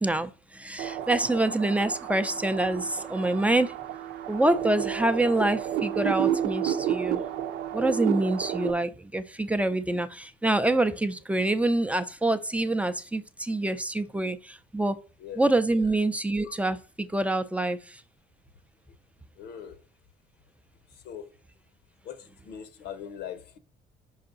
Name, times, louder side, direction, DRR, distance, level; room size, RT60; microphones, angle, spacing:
voice 1, 0.0-3.8 4.3-7.2 7.7-15.0 15.4-18.0, right 2 dB, 10° right, 0.5 m, -26 dB
sound 1, 0.8-8.7, right 10 dB, 75° right, 0.7 m, -31 dB
voice 2, 19.4-19.8 21.0-21.3 22.0-23.6, left 8 dB, 75° left, 0.8 m, -41 dB
5.6 x 5.3 x 3.8 m
cardioid pair, 110°, 17 cm